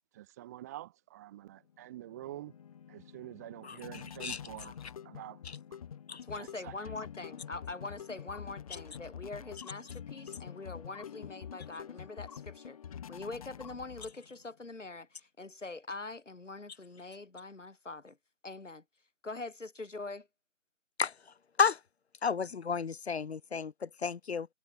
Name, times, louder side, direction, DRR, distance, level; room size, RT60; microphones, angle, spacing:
voice 1, 0.1-2.5 2.9-4.8 5.0-5.4 6.4-6.7, right 14 dB, 15° right, 1.4 m, -46 dB
sound 1, 1.7-14.5, left 8 dB, 30° left, 3.1 m, -47 dB
voice 2, 6.2-12.8 13.1-18.2 18.4-18.8 19.2-20.3, left 3 dB, 75° left, 6.0 m, -43 dB
voice 3, 22.2-24.5, left 6 dB, 60° left, 0.7 m, -31 dB
figure-of-eight pair, 155°, 37 cm